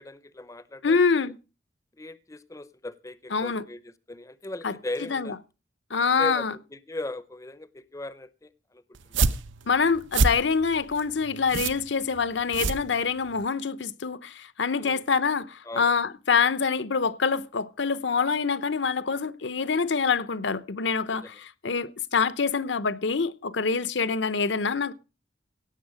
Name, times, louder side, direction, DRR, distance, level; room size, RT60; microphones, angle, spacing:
voice 1, 0.0-1.3 2.0-5.4 6.2-9.3 14.8-15.0 15.6-15.9 21.1-21.3 23.7-23.8, left 2 dB, 15° left, 0.6 m, -39 dB
voice 2, 0.8-1.3 3.3-3.6 4.6-4.7 5.1-5.3 5.9-6.5 9.7-24.9, left 5 dB, 70° left, 0.8 m, -25 dB
sound 1, 8.9-13.4, right 3 dB, 85° right, 0.8 m, -28 dB
17.0 x 7.1 x 6.3 m
head